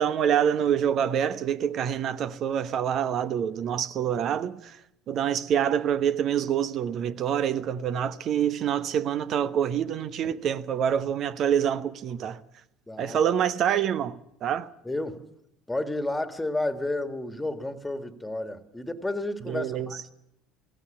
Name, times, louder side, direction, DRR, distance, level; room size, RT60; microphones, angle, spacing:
voice 1, 0.0-4.7 5.1-12.4 13.0-14.7 19.5-19.9, right 9 dB, 50° right, 1.0 m, -26 dB
voice 2, 12.9-13.2 14.8-15.2 15.7-20.0, left 2 dB, 10° left, 1.9 m, -31 dB
17.0 x 16.5 x 10.0 m
hypercardioid pair, 65°, 0 cm